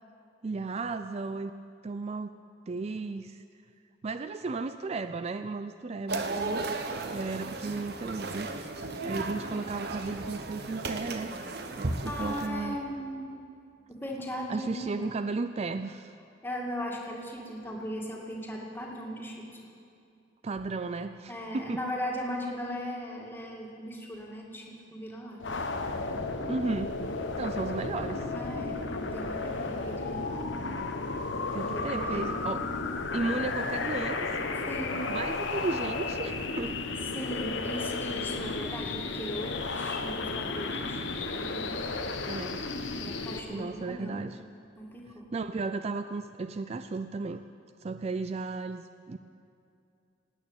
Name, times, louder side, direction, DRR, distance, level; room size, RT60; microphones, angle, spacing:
voice 1, 0.4-1.5 1.8-2.3 2.7-3.4 4.0-6.6 7.1-8.5 9.0-11.3 11.7-12.8 14.5-16.1 20.4-21.8 26.5-26.9 27.4-28.2 31.5-32.7 33.1-34.5 35.1-36.7 42.3-42.6 43.5-44.4 45.3-47.4 47.8-49.2, right 3 dB, 35° right, 10 dB, 0.4 m, -34 dB
sound 1, 6.1-12.5, right 2 dB, 60° right, 1.1 m, -35 dB
voice 2, 12.0-13.3 13.9-15.2 16.4-19.6 21.3-25.6 25.9-26.2 28.3-30.8 31.5-32.5 34.6-35.1 37.1-41.9 43.0-44.2 44.8-45.3, equal, 10° left, -1 dB, 2.2 m, -38 dB
sound 2, 25.4-43.4, left 3 dB, 90° left, 1.2 m, -33 dB
18.0 x 9.0 x 8.8 m, 2.6 s
head